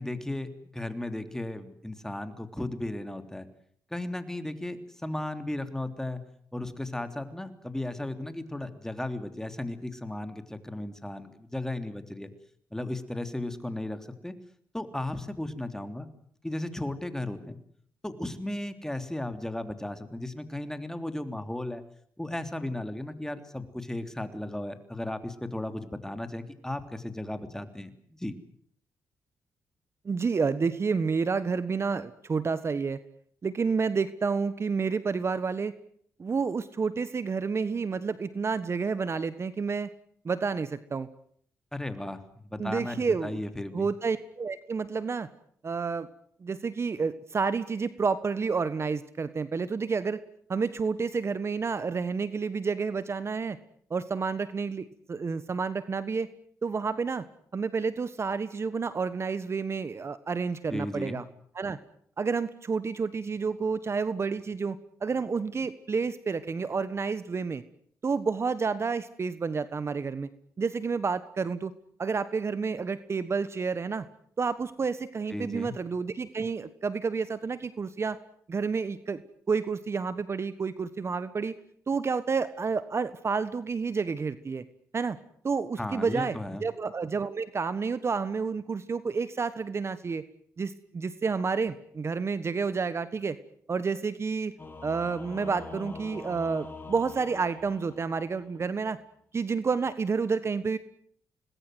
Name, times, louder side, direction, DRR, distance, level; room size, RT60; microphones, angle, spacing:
voice 1, 0.0-3.5 3.9-6.2 6.5-12.3 12.7-14.3 14.7-16.1 16.4-17.6 18.0-21.8 22.2-27.9 28.2-28.3 41.7-42.2 42.5-43.9 60.7-61.2 75.3-75.7 85.8-86.6, left 1 dB, 10° left, 9 dB, 3.3 m, -35 dB
voice 2, 30.0-33.0 33.4-35.7 36.2-39.9 40.2-41.1 42.6-43.4 43.7-45.3 45.6-46.1 46.4-50.2 50.5-53.6 53.9-56.3 56.6-57.2 57.5-61.2 61.5-61.8 62.2-67.6 68.0-70.3 70.6-71.7 72.0-74.1 74.4-78.2 78.5-79.2 79.5-81.5 81.9-84.6 84.9-85.2 85.4-90.2 90.6-93.4 93.7-94.5 94.8-99.0 99.3-100.8, right 5 dB, 45° right, 14 dB, 1.3 m, -30 dB
Singing / Musical instrument, 94.6-98.7, left 3 dB, 30° left, 6.3 m, -44 dB
26.0 x 20.0 x 8.0 m, 0.64 s
cardioid pair, 65°, 6 cm